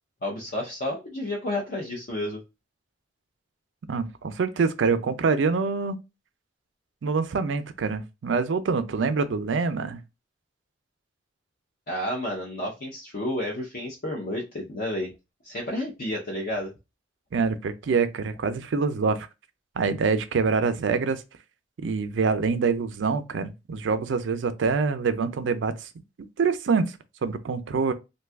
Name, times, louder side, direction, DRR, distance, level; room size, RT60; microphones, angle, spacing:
voice 1, 0.2-2.4 11.9-15.1 15.4-16.7, left 1 dB, 55° left, 0.6 m, -31 dB
voice 2, 3.9-6.0 7.0-10.0 17.3-19.3 19.8-21.2 21.8-25.9 26.4-27.9, right 4 dB, 85° right, 0.4 m, -25 dB
2.6 x 2.3 x 3.3 m
head